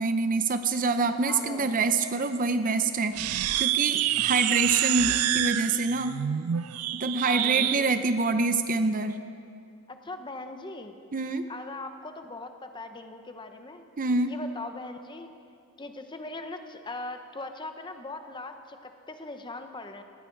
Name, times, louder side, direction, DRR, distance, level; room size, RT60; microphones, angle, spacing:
voice 1, 0.0-6.2 6.9-9.2 11.1-11.5 14.0-14.3, right 3 dB, 40° right, 9 dB, 0.6 m, -26 dB
voice 2, 1.2-1.9 7.2-7.9 9.9-10.9 11.5-13.8 14.2-15.3 15.8-20.0, left 2 dB, 20° left, 7 dB, 0.9 m, -40 dB
sound 1, 3.1-7.8, right 13 dB, 80° right, 0.4 m, -27 dB
19.0 x 15.5 x 4.6 m, 2.4 s
head